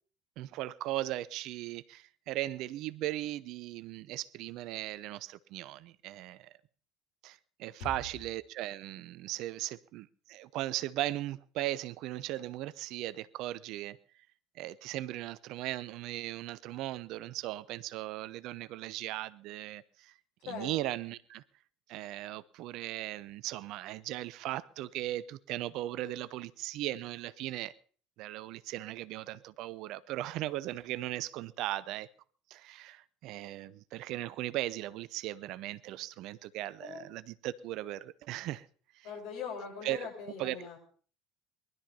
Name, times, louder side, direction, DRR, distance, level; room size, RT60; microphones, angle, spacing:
voice 1, 0.4-6.5 7.2-14.0 14.5-20.1 20.4-21.4 21.9-27.7 28.2-32.1 32.5-38.7 38.9-39.1 39.8-40.1 40.4-40.7, right 15 dB, 60° right, 0.8 m, -38 dB
voice 2, 39.0-40.8, left 6 dB, 70° left, 7.3 m, -41 dB
20.0 x 12.5 x 5.5 m
hypercardioid pair, 65°, 0 cm